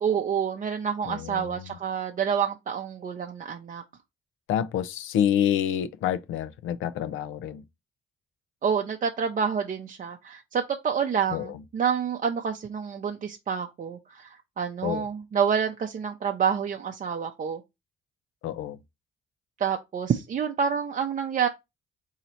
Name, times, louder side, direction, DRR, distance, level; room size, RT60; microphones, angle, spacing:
voice 1, 0.0-3.8 8.6-17.6 19.6-21.5, right 7 dB, 40° right, 0.6 m, -28 dB
voice 2, 1.1-1.5 4.5-7.6 11.3-11.5 14.8-15.1 18.4-18.8, left 10 dB, 80° left, 0.5 m, -27 dB
3.9 x 2.8 x 4.3 m
cardioid pair, 90°, 20 cm